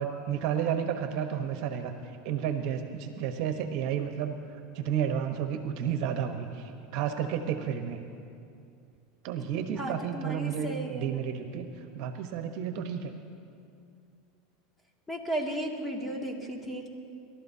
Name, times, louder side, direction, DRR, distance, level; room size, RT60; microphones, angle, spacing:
voice 1, 0.0-4.3 4.7-8.0 9.2-13.1, right 8 dB, 60° right, 7 dB, 1.0 m, -32 dB
voice 2, 9.7-11.3 15.1-16.9, right 1 dB, 10° left, 0 dB, 2.2 m, -35 dB
27.5 x 12.5 x 2.8 m, 2.5 s
hypercardioid pair, 100°, 0 cm